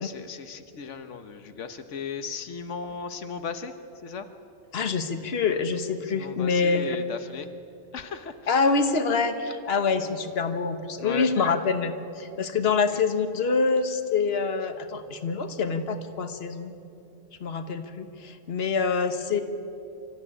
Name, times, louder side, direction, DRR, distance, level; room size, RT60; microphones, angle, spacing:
voice 1, 0.0-3.7 4.0-4.3 6.0-7.5 7.9-8.8 11.0-11.3 12.8-13.0, left 5 dB, 90° left, 8 dB, 1.3 m, -36 dB
voice 2, 4.7-7.0 8.5-11.9 12.2-16.7 17.4-19.4, left 4 dB, 60° left, 8 dB, 1.5 m, -26 dB
25.0 x 14.0 x 10.0 m, 2.7 s
omnidirectional pair, 1.2 m